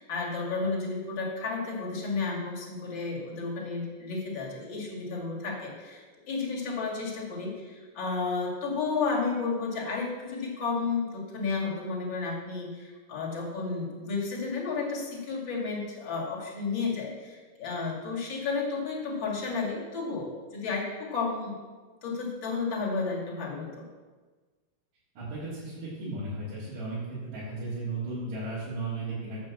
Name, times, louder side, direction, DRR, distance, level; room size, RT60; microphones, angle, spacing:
voice 1, 0.0-21.6 22.0-23.8, left 4 dB, 35° left, -3 dB, 2.4 m, -32 dB
voice 2, 25.2-27.0 27.2-29.4, right 2 dB, 85° right, -10 dB, 5.3 m, -35 dB
9.2 x 7.5 x 7.4 m, 1.4 s
omnidirectional pair, 4.7 m